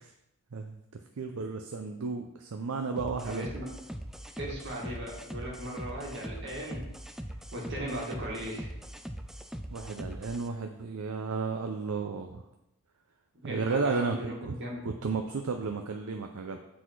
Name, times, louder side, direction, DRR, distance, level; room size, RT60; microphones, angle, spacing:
voice 1, 1.2-3.5 9.7-12.4 13.4-14.6 14.8-16.6, right 4 dB, 70° right, 5 dB, 0.5 m, -33 dB
sound 1, 3.0-10.5, equal, ahead, 0.3 m, -41 dB
voice 2, 3.2-3.7 4.4-6.9 7.5-8.7 13.4-14.8, right 1 dB, 55° right, -3 dB, 2.1 m, -38 dB
8.0 x 4.1 x 4.6 m, 0.90 s
head